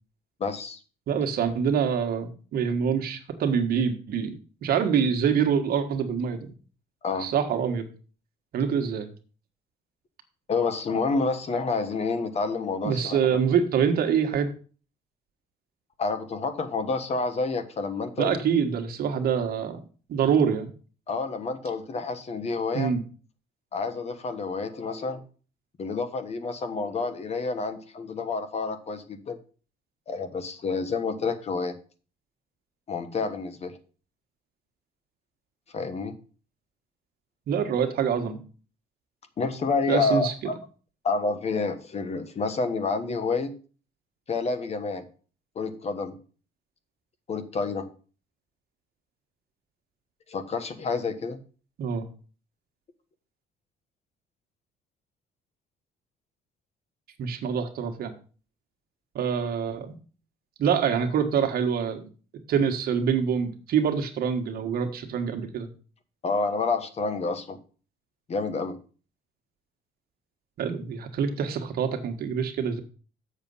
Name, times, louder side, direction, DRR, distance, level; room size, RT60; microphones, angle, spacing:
voice 1, 0.4-0.8 7.0-7.3 10.5-13.4 16.0-18.3 21.1-22.9 23.7-25.2 25.8-29.4 30.1-31.7 32.9-33.7 35.7-36.1 39.4-40.6 41.0-43.5 44.3-45.0 45.5-46.2 47.3-47.9 50.3-51.4 66.2-67.6 68.3-68.8, left 4 dB, 40° left, 10 dB, 1.3 m, -29 dB
voice 2, 1.1-6.5 7.2-7.8 8.5-9.1 12.8-14.5 18.2-19.8 20.1-20.7 22.7-23.0 37.5-38.4 39.9-40.3 51.8-52.0 57.2-58.1 59.1-60.0 60.6-62.0 62.5-65.7 70.6-72.8, right 7 dB, 65° right, 6 dB, 1.4 m, -25 dB
7.4 x 6.4 x 5.5 m, 0.39 s
cardioid pair, 110°, 17 cm